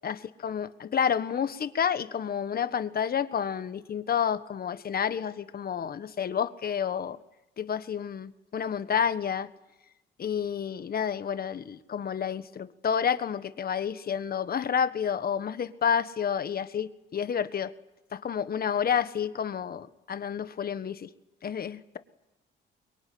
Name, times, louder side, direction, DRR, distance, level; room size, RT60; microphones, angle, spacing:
voice 1, 0.0-7.2 7.6-9.5 10.2-17.7 18.1-21.1 21.4-22.0, left 7 dB, 50° left, 12 dB, 1.5 m, -30 dB
24.0 x 23.0 x 9.5 m, 0.98 s
cardioid pair, 90°, 20 cm